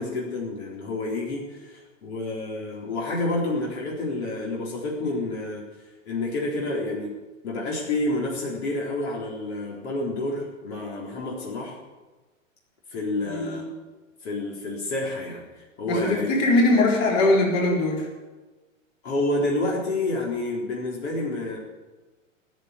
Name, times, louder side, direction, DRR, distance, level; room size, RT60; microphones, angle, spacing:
voice 1, 0.0-5.7 6.1-7.1 7.4-11.8 12.9-13.7 14.2-16.5 19.0-21.6, left 2 dB, 55° left, -3 dB, 3.8 m, -29 dB
voice 2, 13.3-13.6 15.9-18.1, left 2 dB, 35° left, -1 dB, 4.3 m, -21 dB
16.5 x 7.7 x 9.8 m, 1.2 s
figure-of-eight pair, 105°, 39 cm